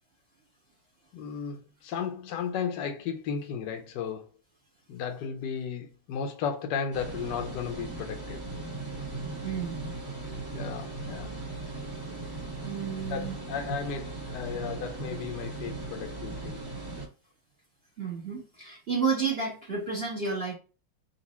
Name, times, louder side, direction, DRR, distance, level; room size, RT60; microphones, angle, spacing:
voice 1, 1.1-4.3 4.9-8.4 10.5-11.3 13.1-16.6, left 7 dB, 75° left, 1.2 m, -34 dB
sound 1, 6.9-17.1, right 3 dB, 15° right, 0.9 m, -38 dB
voice 2, 9.4-9.8 12.6-13.4 18.0-20.5, right 5 dB, 35° right, 1.4 m, -31 dB
4.0 x 2.5 x 4.1 m
omnidirectional pair, 1.9 m